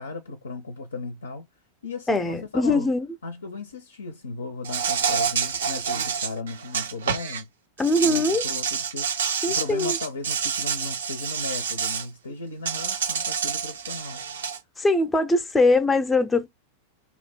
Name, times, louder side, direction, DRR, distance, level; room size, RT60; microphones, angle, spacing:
voice 1, 0.0-1.5 1.8-2.9 3.2-7.5 8.0-9.1 9.5-14.2, left 3 dB, 70° left, 0.5 m, -36 dB
voice 2, 2.1-3.1 7.8-8.4 9.4-10.0 14.8-16.5, left 2 dB, 10° left, 0.5 m, -22 dB
Insect, 4.6-7.4 7.8-12.0 12.6-14.6, right 6 dB, 65° right, 0.4 m, -28 dB
2.7 x 2.3 x 3.3 m
figure-of-eight pair, 90°, 0 cm